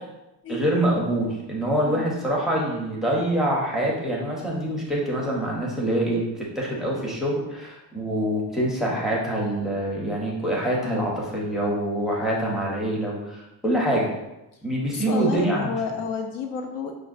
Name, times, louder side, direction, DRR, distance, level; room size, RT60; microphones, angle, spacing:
voice 1, 0.5-14.1 14.6-15.7, right 1 dB, ahead, -4 dB, 0.5 m, -25 dB
voice 2, 10.8-11.1 14.9-16.9, left 5 dB, 55° left, 4 dB, 0.4 m, -31 dB
6.1 x 2.1 x 2.4 m, 0.95 s
cardioid pair, 155°, 40 cm